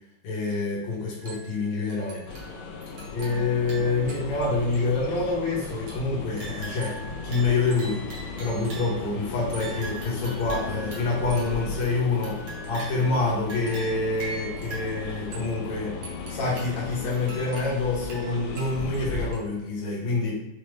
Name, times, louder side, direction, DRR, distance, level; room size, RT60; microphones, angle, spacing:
voice 1, 0.2-2.2 3.1-7.0 7.2-8.0 8.4-12.4 12.7-15.9 16.3-20.4, left 3 dB, 65° left, -5 dB, 1.5 m, -27 dB
sound 1, 1.2-1.6 1.9-4.4 4.7-4.8 5.6-9.1 9.5-13.2 13.5-15.5 16.0-19.0 19.3-19.4, right 3 dB, 70° right, 1.4 m, -42 dB
sound 2, 2.3-19.3, left 4 dB, 80° left, 2.1 m, -36 dB
5.8 x 2.1 x 3.2 m, 0.87 s
omnidirectional pair, 4.1 m